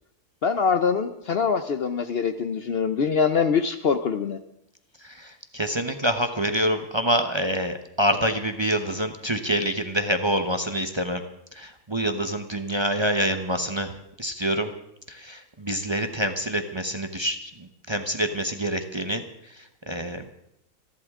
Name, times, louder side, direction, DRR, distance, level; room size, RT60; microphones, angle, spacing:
voice 1, 0.4-4.4, left 6 dB, 55° left, 10 dB, 0.8 m, -24 dB
voice 2, 5.0-11.2 11.6-13.9 14.2-14.7 15.1-17.5 17.9-19.2 19.9-20.2, equal, 25° right, 6 dB, 0.9 m, -26 dB
27.0 x 11.5 x 3.7 m, 0.80 s
omnidirectional pair, 1.4 m